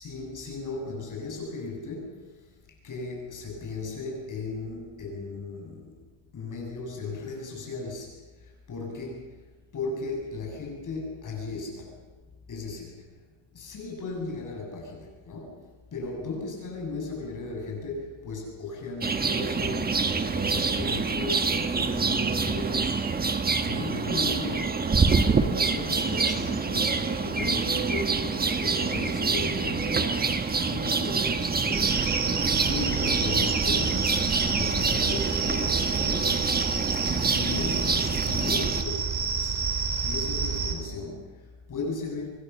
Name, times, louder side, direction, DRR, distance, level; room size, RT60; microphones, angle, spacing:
voice 1, 0.0-2.3 2.8-6.0 6.3-8.1 8.4-9.3 9.7-12.0 12.5-13.1 13.5-23.3 23.6-32.3 32.7-36.5 37.0-42.3, left 3 dB, 45° left, 0 dB, 7.5 m, -36 dB
sound 1, 19.0-38.8, right 4 dB, 20° right, 1.3 m, -26 dB
sound 2, 31.7-40.7, right 5 dB, 40° right, 4.7 m, -29 dB
26.5 x 22.5 x 7.0 m, 1.2 s
cardioid pair, 165°, 44 cm